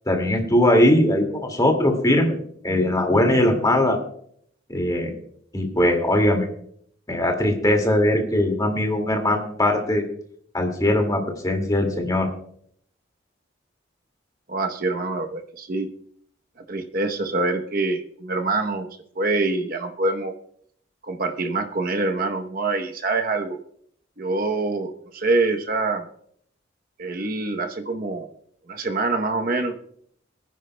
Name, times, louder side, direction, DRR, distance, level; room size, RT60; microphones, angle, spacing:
voice 1, 0.1-4.0 4.7-5.1 5.5-6.5 7.1-10.0 10.5-12.3, left 1 dB, 20° left, 3 dB, 2.2 m, -20 dB
voice 2, 14.5-15.9 16.7-18.9 19.2-20.3 21.0-23.6 24.2-26.0 27.0-28.3 28.7-29.7, right 3 dB, 50° right, 5 dB, 0.9 m, -25 dB
25.5 x 10.0 x 2.2 m, 0.64 s
head